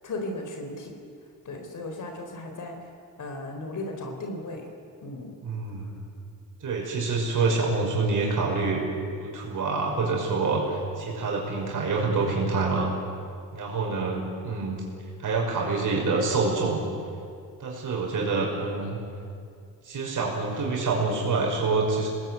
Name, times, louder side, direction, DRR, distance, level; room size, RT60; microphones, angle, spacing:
voice 1, 0.0-1.0 1.4-2.8 3.2-4.7 5.0-5.4 5.8-5.9, left 2 dB, 55° left, 4 dB, 4.1 m, -36 dB
voice 2, 5.4-5.9 6.6-8.8 9.1-12.9 13.5-14.8 15.2-16.8 17.6-19.0 19.8-22.1, right 3 dB, 55° right, -1 dB, 6.1 m, -26 dB
26.0 x 20.0 x 9.4 m, 2.3 s
cardioid pair, 120°, 37 cm